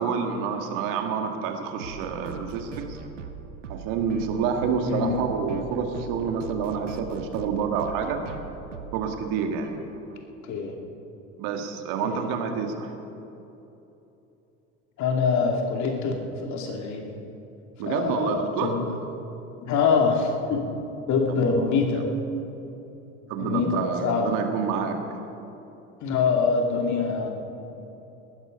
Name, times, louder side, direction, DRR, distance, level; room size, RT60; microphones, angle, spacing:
voice 1, 0.0-3.0 3.7-8.3 8.9-9.7 11.4-12.9 17.8-18.7 23.3-25.0, right 6 dB, 65° right, 4 dB, 2.0 m, -28 dB
sound 1, 1.8-10.2, right 7 dB, 90° right, 1.0 m, -41 dB
voice 2, 4.8-5.2 10.4-10.7 12.0-12.2 15.0-17.1 17.8-18.8 19.6-20.6 21.1-22.1 23.4-24.3 26.0-27.3, left 5 dB, 50° left, 2 dB, 2.7 m, -24 dB
18.0 x 13.5 x 5.4 m, 3.0 s
hypercardioid pair, 65°, 36 cm